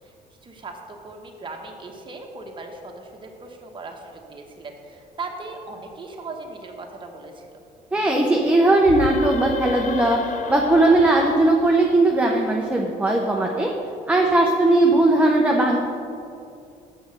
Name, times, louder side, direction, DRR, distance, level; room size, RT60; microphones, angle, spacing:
voice 1, 0.4-7.5, right 3 dB, 30° right, 2 dB, 1.2 m, -38 dB
voice 2, 7.9-10.2 10.5-13.7 14.1-15.8, right 2 dB, 10° right, -1 dB, 0.7 m, -18 dB
sound 1, 8.8-12.4, left 6 dB, 45° left, 0.5 m, -32 dB
6.3 x 6.0 x 6.5 m, 2.6 s
cardioid pair, 110°, 17 cm